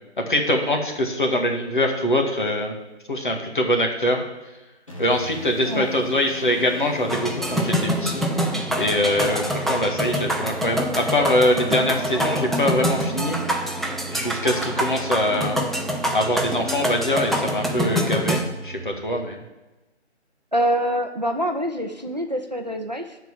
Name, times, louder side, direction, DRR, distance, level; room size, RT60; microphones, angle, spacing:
voice 1, 0.2-2.7 3.1-4.2 5.0-8.3 8.7-13.4 14.1-15.6 16.1-19.4, left 1 dB, 45° left, 1 dB, 1.9 m, -23 dB
sound 1, 4.9-19.0, right 2 dB, 30° left, 1.5 m, -37 dB
sound 2, 7.1-18.4, equal, ahead, 0.4 m, -26 dB
voice 2, 20.5-23.2, equal, 40° right, 5 dB, 0.7 m, -25 dB
10.5 x 4.6 x 6.9 m, 1.1 s
figure-of-eight pair, 175°, 35 cm